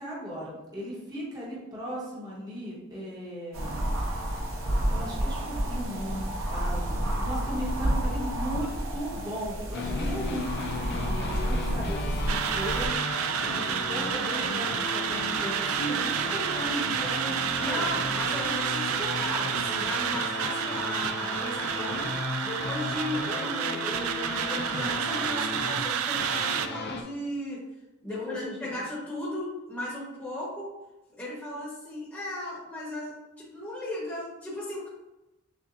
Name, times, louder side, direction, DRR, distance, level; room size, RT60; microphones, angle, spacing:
voice 1, 0.0-3.8 4.8-13.0 13.4-17.9 28.0-28.8, equal, 20° right, -6 dB, 1.2 m, -37 dB
sound 1, 3.5-12.9, right 1 dB, 70° right, 0.8 m, -30 dB
sound 2, 9.7-27.0, left 3 dB, 55° left, 0.5 m, -36 dB
sound 3, 12.3-26.7, right 8 dB, 90° right, 0.3 m, -30 dB
voice 2, 17.6-27.6 28.0-30.7 31.2-34.9, left 1 dB, 10° left, -8 dB, 1.3 m, -36 dB
6.6 x 2.4 x 2.6 m, 1.0 s
head